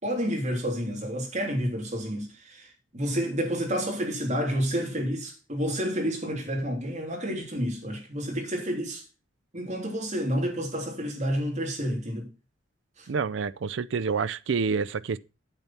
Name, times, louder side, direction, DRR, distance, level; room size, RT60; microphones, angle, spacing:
voice 1, 0.0-9.0 9.5-12.3 13.0-13.1, equal, 35° right, 3.4 m, -30 dB
voice 2, 13.1-15.2, right 5 dB, 65° right, 0.5 m, -28 dB
9.1 x 6.9 x 5.9 m
head